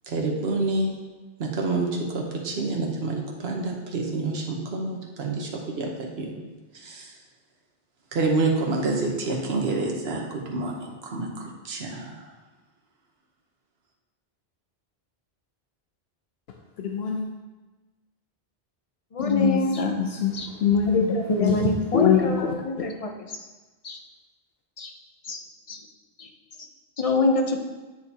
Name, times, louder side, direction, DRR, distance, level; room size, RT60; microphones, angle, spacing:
voice 1, 0.0-0.9 1.4-6.4 6.7-7.2 8.1-12.3, right 3 dB, 80° right, 0 dB, 1.2 m, -28 dB
voice 2, 16.8-17.3 19.2-22.9, left 7 dB, 80° left, 2 dB, 0.8 m, -24 dB
voice 3, 19.1-19.8 20.3-20.5 20.9-23.1 23.8-24.0 24.8-24.9 25.2-25.8 26.2-26.3 27.0-27.6, left 2 dB, 40° left, 4 dB, 0.6 m, -25 dB
8.5 x 6.5 x 2.8 m, 1.2 s
omnidirectional pair, 1.0 m